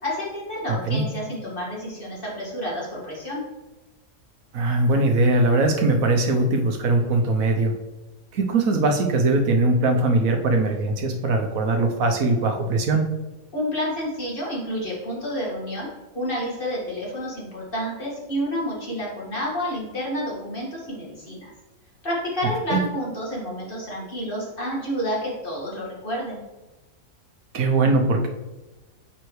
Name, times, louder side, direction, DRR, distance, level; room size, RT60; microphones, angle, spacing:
voice 1, 0.0-3.4 13.5-15.9 16.1-21.5 22.0-26.4, equal, 40° left, -5 dB, 2.0 m, -29 dB
voice 2, 4.5-7.7 8.3-13.1 22.7-22.8 27.5-28.3, right 2 dB, 75° right, 3 dB, 1.2 m, -21 dB
9.1 x 4.0 x 3.1 m, 1.1 s
omnidirectional pair, 1.5 m